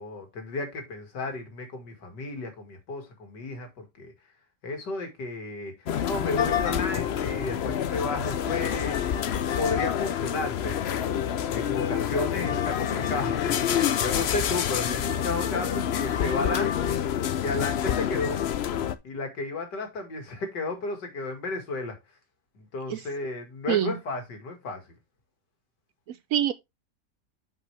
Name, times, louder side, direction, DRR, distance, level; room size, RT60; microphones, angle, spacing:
voice 1, 0.0-4.1 4.6-9.0 9.5-10.9 11.5-16.9 17.4-18.4 19.0-22.0 22.5-24.9, left 3 dB, 90° left, 2.7 m, -33 dB
sound 1, 5.9-18.9, left 9 dB, 65° left, 0.6 m, -27 dB
voice 2, 26.1-26.5, right 11 dB, 70° right, 0.8 m, -25 dB
8.3 x 5.7 x 3.3 m
omnidirectional pair, 1.8 m